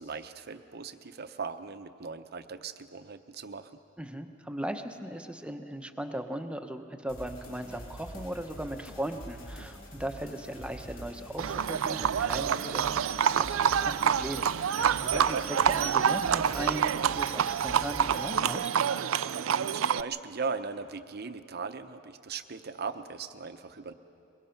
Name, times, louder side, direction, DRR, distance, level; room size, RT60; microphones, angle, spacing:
voice 1, 0.0-3.8 19.3-23.9, right 5 dB, 55° right, 10 dB, 0.8 m, -38 dB
voice 2, 4.0-13.0 13.3-18.7, right 1 dB, 5° right, 6 dB, 0.9 m, -38 dB
sound 1, 7.1-18.4, equal, 90° left, 3.2 m, -46 dB
Livestock farm animals working animals, 11.4-20.0, right 8 dB, 85° right, 0.4 m, -27 dB
22.5 x 22.5 x 5.9 m, 2.7 s
head